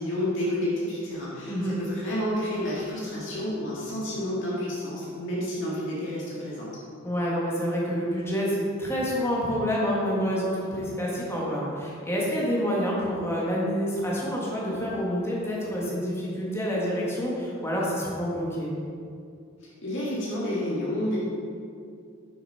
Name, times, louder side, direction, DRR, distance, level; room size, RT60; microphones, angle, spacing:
voice 1, 0.0-6.7 19.6-21.2, left 1 dB, 60° left, -7 dB, 2.0 m, -30 dB
voice 2, 7.0-18.7, equal, 10° left, -5 dB, 1.6 m, -28 dB
6.7 x 6.3 x 5.6 m, 2.4 s
head